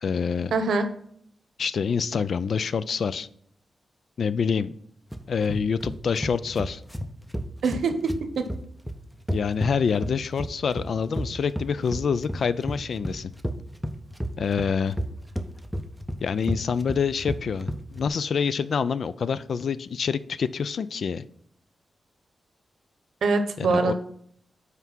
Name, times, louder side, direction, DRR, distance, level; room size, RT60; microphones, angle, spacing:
voice 1, 0.0-0.5 1.6-3.3 4.2-4.7 5.3-6.8 9.3-13.3 14.4-15.0 16.2-21.2 23.6-23.9, left 6 dB, 55° left, 15 dB, 0.3 m, -26 dB
voice 2, 0.5-0.9 7.6-8.4 23.2-23.9, right 4 dB, 80° right, 8 dB, 0.9 m, -24 dB
sound 1, 5.1-18.1, equal, ahead, 0.5 m, -32 dB
5.7 x 4.6 x 6.0 m, 0.65 s
wide cardioid pair, 165°, 0 cm